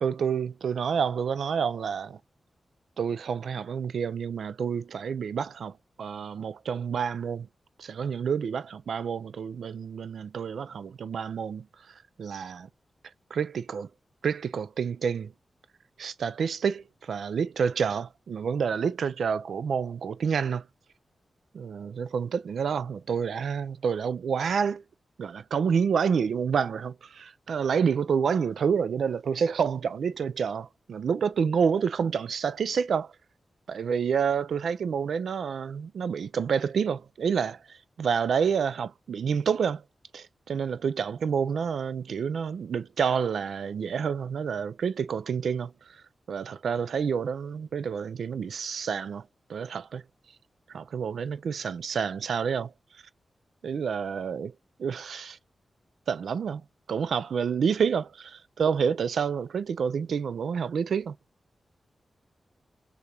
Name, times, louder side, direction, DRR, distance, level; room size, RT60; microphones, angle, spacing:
voice 1, 0.0-2.2 3.0-5.7 6.0-7.5 7.8-11.6 12.2-12.7 13.3-13.9 14.2-15.3 16.0-20.6 21.5-24.8 25.2-33.1 33.7-37.6 38.0-39.8 40.1-45.7 46.3-49.2 49.5-50.0 50.7-52.7 53.6-54.5 54.8-55.4 56.1-56.6 56.9-58.1 58.6-61.2, right 6 dB, 90° right, 0.3 m, -28 dB
6.5 x 2.4 x 2.8 m
wide cardioid pair, 80°, 0 cm